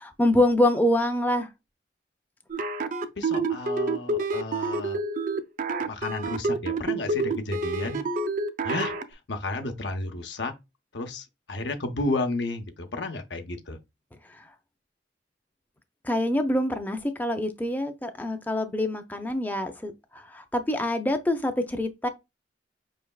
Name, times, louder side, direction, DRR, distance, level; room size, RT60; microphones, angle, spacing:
voice 1, 0.0-1.5 16.0-22.1, left 1 dB, 10° left, 0.5 m, -25 dB
sound 1, 2.5-9.0, right 3 dB, 45° right, 0.5 m, -28 dB
voice 2, 3.2-5.0 5.9-8.0 8.6-10.5 10.9-13.8, left 2 dB, 75° left, 0.8 m, -32 dB
5.3 x 3.3 x 2.3 m
head